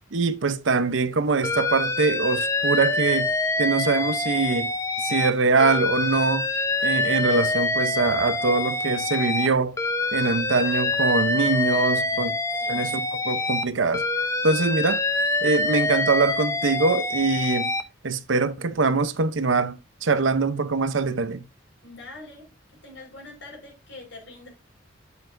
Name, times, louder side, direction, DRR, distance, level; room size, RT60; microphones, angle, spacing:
voice 1, 0.1-3.3 3.6-4.7 5.0-6.5 6.8-9.8 10.1-12.3 12.7-14.0 14.4-15.0 15.4-17.7 18.0-21.4, right 3 dB, 75° right, 0.7 m, -23 dB
Alarm, 1.4-5.3 5.6-9.5 9.8-13.6 13.9-17.8, left 2 dB, 15° left, 0.6 m, -25 dB
voice 2, 11.9-12.8 21.8-22.5 22.8-24.5, left 2 dB, 65° left, 4.6 m, -44 dB
9.4 x 7.8 x 2.6 m
head